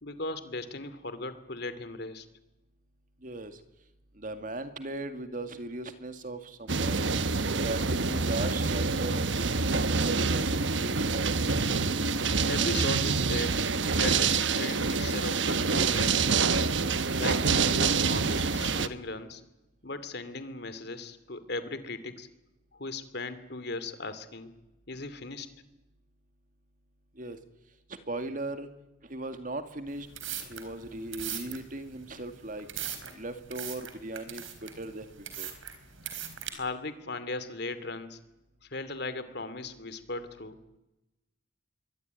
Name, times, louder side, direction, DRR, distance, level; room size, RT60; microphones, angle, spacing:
voice 1, 0.0-2.3 12.4-13.6 14.0-16.8 17.2-19.4 19.8-22.3 22.7-24.5 24.9-25.5 36.5-38.2 38.7-40.8, left 2 dB, 55° left, 13 dB, 2.5 m, -37 dB
voice 2, 3.2-3.6 4.2-7.1 7.6-11.3 27.2-27.4 27.9-28.7 29.1-30.1 30.4-32.7 33.2-35.5, right 2 dB, 45° right, 9 dB, 2.2 m, -38 dB
sound 1, 6.7-18.9, right 4 dB, 65° right, 1.2 m, -26 dB
sound 2, 29.9-36.5, right 10 dB, 90° right, 4.1 m, -40 dB
27.5 x 22.5 x 9.6 m, 0.97 s
head